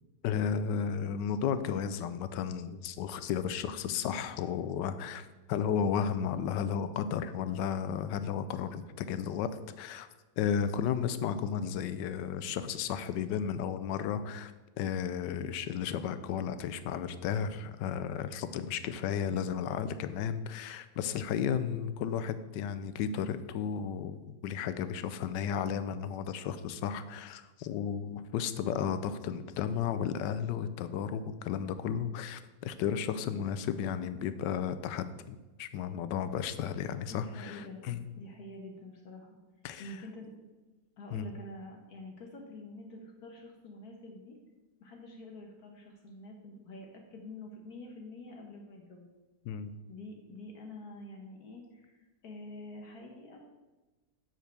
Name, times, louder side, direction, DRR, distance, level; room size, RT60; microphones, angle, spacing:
voice 1, 0.2-9.5 9.8-10.1 10.4-14.5 14.8-38.0 39.6-39.9 41.1-41.2 49.4-49.7, left 8 dB, 80° left, 12 dB, 1.2 m, -33 dB
voice 2, 37.1-37.8 38.2-39.4 39.8-40.3 41.0-44.4 44.8-49.1 49.9-53.4, left 2 dB, 60° left, 1 dB, 1.5 m, -47 dB
7.3 x 4.5 x 6.7 m, 1.1 s
omnidirectional pair, 1.9 m